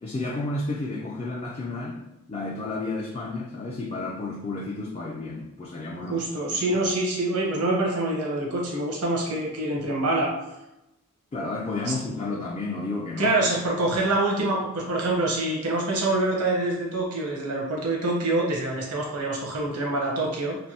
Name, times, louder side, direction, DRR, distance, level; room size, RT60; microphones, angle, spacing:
voice 1, 0.0-2.0 2.3-6.2 6.5-6.8 11.3-13.3, left 2 dB, 30° left, -2 dB, 0.3 m, -31 dB
voice 2, 6.0-10.3 11.9-12.0 13.2-20.6, right 2 dB, 85° right, -2 dB, 0.9 m, -25 dB
3.2 x 2.6 x 2.8 m, 0.92 s
head